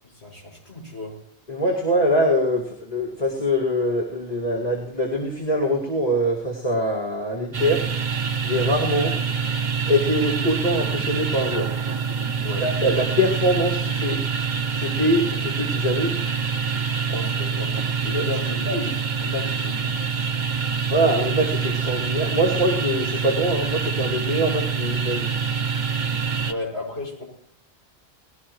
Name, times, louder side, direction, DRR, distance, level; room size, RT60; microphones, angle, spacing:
voice 1, 0.0-1.2 12.4-12.7 17.1-17.7 18.0-20.0 26.5-27.2, left 2 dB, 75° left, -2 dB, 7.5 m, -34 dB
voice 2, 1.5-7.8 8.4-9.2 9.9-11.7 12.6-14.2 14.7-16.2 18.1-18.2 18.7-18.9 20.9-25.3, equal, 35° left, -4 dB, 2.5 m, -23 dB
sound 1, 7.5-26.5, right 5 dB, 45° right, 1.1 m, -26 dB
20.0 x 17.0 x 3.2 m, 0.70 s
omnidirectional pair, 1.1 m